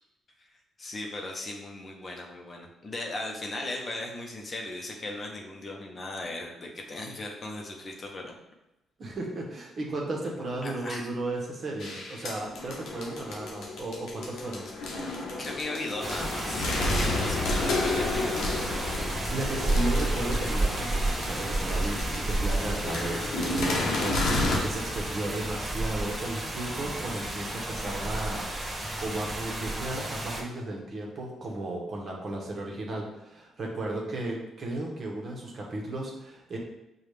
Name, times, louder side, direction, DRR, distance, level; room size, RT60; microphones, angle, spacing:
voice 1, 0.8-8.4 10.6-11.1 15.4-18.5, left 2 dB, 35° left, 0 dB, 0.7 m, -37 dB
voice 2, 9.0-14.7 19.3-36.6, right 2 dB, 45° right, -1 dB, 1.0 m, -35 dB
sound 1, 11.8-24.6, left 2 dB, 75° left, 0.8 m, -31 dB
sound 2, 16.0-30.4, right 2 dB, 20° right, 0.8 m, -31 dB
4.9 x 2.3 x 3.2 m, 0.92 s
cardioid pair, 90°, 0 cm